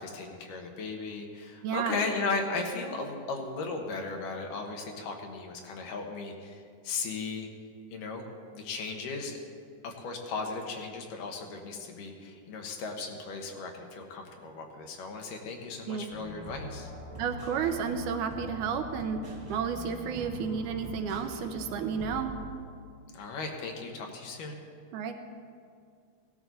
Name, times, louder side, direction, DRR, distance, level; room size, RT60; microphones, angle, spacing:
voice 1, 0.0-7.5 7.9-8.3 8.5-9.4 9.8-16.9 23.1-24.6, left 3 dB, 85° left, 2 dB, 2.9 m, -36 dB
voice 2, 1.6-2.0 15.9-16.1 17.2-19.2 19.5-22.3 24.9-25.1, right 6 dB, 80° right, 6 dB, 2.2 m, -32 dB
sound 1, 16.1-22.5, equal, 15° right, 1.2 m, -43 dB
17.5 x 12.5 x 4.1 m, 2.2 s
omnidirectional pair, 3.7 m